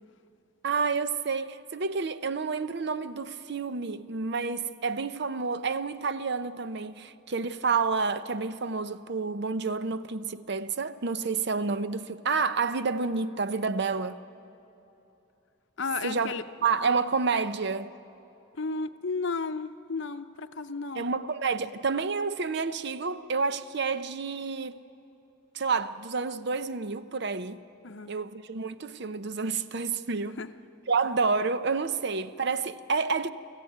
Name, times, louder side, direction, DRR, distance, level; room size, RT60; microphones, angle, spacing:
voice 1, 0.6-14.2 16.0-16.3 16.6-17.9 21.0-24.8 25.5-27.6 28.1-30.4 30.9-33.3, right 4 dB, 50° right, 0.6 m, -29 dB
voice 2, 15.8-16.4 18.6-21.0 27.8-28.1 30.4-30.5, left 4 dB, 55° left, 0.7 m, -33 dB
24.5 x 14.5 x 9.2 m
head